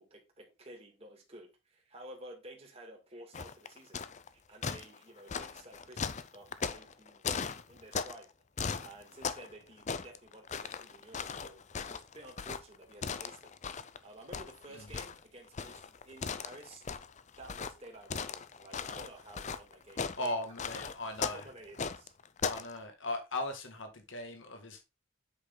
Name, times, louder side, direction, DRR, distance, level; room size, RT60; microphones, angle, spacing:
voice 1, 0.0-4.0 4.3-8.3 8.8-11.6 11.9-13.6 14.0-16.8 17.4-20.4 20.7-20.8 21.2-22.2, right 1 dB, 30° right, 2.3 m, -52 dB
sound 1, 3.3-4.3 4.6-8.2 8.6-9.5 9.8-14.0 14.3-22.7, left 5 dB, 35° left, 0.5 m, -38 dB
voice 2, 20.2-21.5 22.5-24.8, left 1 dB, 65° left, 2.0 m, -38 dB
8.0 x 6.0 x 3.9 m
head